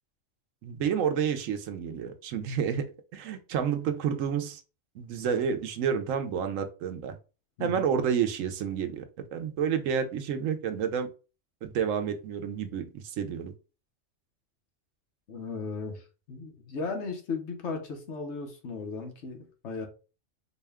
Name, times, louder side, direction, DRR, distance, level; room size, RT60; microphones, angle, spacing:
voice 1, 0.6-2.8 3.1-4.6 5.0-7.1 7.6-9.0 9.3-11.1 11.6-13.5, right 7 dB, 80° right, 1.0 m, -29 dB
voice 2, 15.3-16.0 16.3-19.9, left 4 dB, 65° left, 1.2 m, -36 dB
4.2 x 2.2 x 3.4 m
omnidirectional pair, 1.3 m